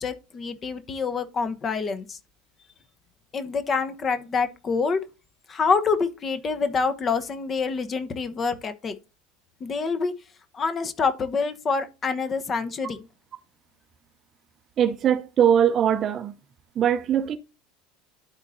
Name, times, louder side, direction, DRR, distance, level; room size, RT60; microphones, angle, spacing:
voice 1, 0.0-2.2 3.3-5.0 5.5-8.9 9.6-10.1 10.5-13.1, left 5 dB, 30° left, 1.0 m, -26 dB
voice 2, 14.8-16.3 16.8-17.4, right 9 dB, 40° right, 0.7 m, -21 dB
12.0 x 4.3 x 2.7 m
figure-of-eight pair, 70°, 0 cm